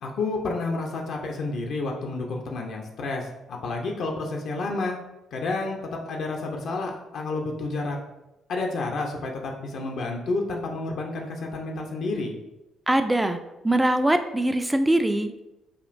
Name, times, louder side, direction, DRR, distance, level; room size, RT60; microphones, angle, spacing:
voice 1, 0.0-5.0 5.3-8.0 8.5-12.3, left 3 dB, 60° left, 1 dB, 0.5 m, -30 dB
voice 2, 12.9-13.4 13.6-15.5, right 1 dB, 15° right, 8 dB, 0.4 m, -22 dB
5.0 x 2.4 x 2.5 m, 0.95 s
hypercardioid pair, 45°, 0 cm